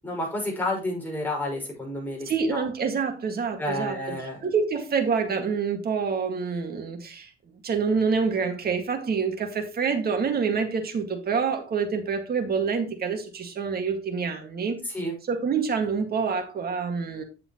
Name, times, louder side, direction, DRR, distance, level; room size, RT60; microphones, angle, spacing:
voice 1, 0.0-2.7 3.6-4.4 14.8-15.1, left 1 dB, 10° left, 5.4 m, -30 dB
voice 2, 2.3-4.2 4.4-7.3 7.6-14.8 15.3-17.2, right 5 dB, 50° right, 2.0 m, -27 dB
8.5 x 7.3 x 3.1 m
cardioid pair, 90°, 20 cm